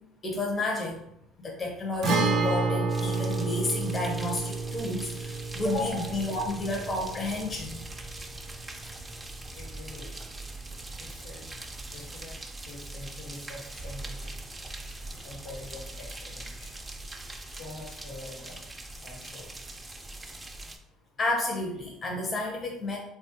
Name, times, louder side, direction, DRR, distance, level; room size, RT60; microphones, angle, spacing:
voice 1, 0.2-1.0 1.4-7.8 21.2-23.0, left 2 dB, 35° left, 0 dB, 0.6 m, -31 dB
Guitar, 2.0-9.6 9.9-10.0 12.0-12.2, right 3 dB, 65° right, 0.6 m, -31 dB
sound 1, 2.9-20.8, right 2 dB, 15° right, 0.4 m, -42 dB
voice 2, 9.6-10.2 11.0-11.5 11.9-12.4 12.6-14.3 15.2-16.8 17.5-18.7 19.0-20.0, left 2 dB, 85° left, -3 dB, 1.1 m, -45 dB
3.0 x 2.3 x 2.8 m, 0.78 s
supercardioid pair, 90°, 0 cm